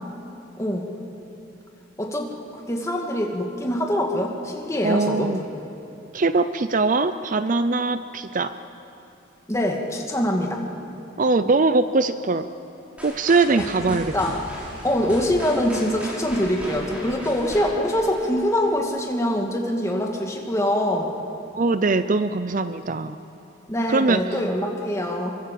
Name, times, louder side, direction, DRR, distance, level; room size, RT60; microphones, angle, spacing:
voice 1, 2.0-2.3 2.7-5.3 9.5-10.6 13.9-14.4 14.8-21.1 23.7-25.3, equal, 15° left, 1 dB, 2.3 m, -24 dB
voice 2, 4.8-5.4 6.1-8.5 11.2-12.5 13.0-14.1 21.5-23.2 23.9-24.2, right 3 dB, 40° right, 11 dB, 0.6 m, -21 dB
sound 1, 13.0-18.9, equal, 5° right, 5.9 m, -37 dB
25.5 x 23.5 x 7.7 m, 2.9 s
head